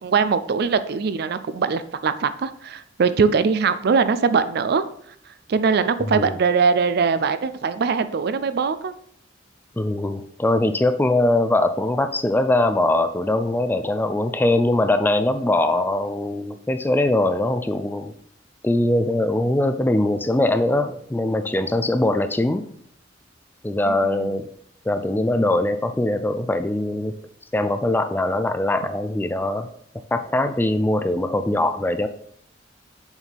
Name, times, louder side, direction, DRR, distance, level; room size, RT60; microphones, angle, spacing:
voice 1, 0.0-4.8 5.5-8.9 23.8-24.4, right 5 dB, 55° right, 12 dB, 0.4 m, -21 dB
voice 2, 9.8-18.1 18.6-22.7 23.6-24.5 24.9-27.1 27.5-29.7 30.1-32.1, left 1 dB, 10° left, 9 dB, 0.3 m, -21 dB
7.0 x 4.1 x 3.4 m, 0.63 s
head